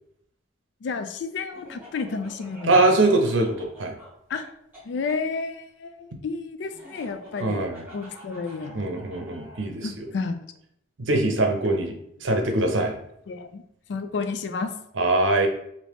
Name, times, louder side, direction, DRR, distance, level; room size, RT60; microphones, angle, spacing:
voice 1, 0.8-2.9 4.3-4.5 4.8-7.7 7.9-8.9 9.8-10.4 13.3-13.6 13.9-14.7, left 4 dB, 65° left, 8 dB, 0.3 m, -31 dB
Laughter, 1.5-5.2 6.7-9.7, equal, 10° right, 1.2 m, -47 dB
voice 2, 2.6-4.0 7.4-7.8 8.7-10.1 11.0-11.9 12.2-12.9 15.0-15.5, right 2 dB, 75° right, 4 dB, 0.6 m, -22 dB
3.1 x 2.7 x 3.3 m, 0.74 s
head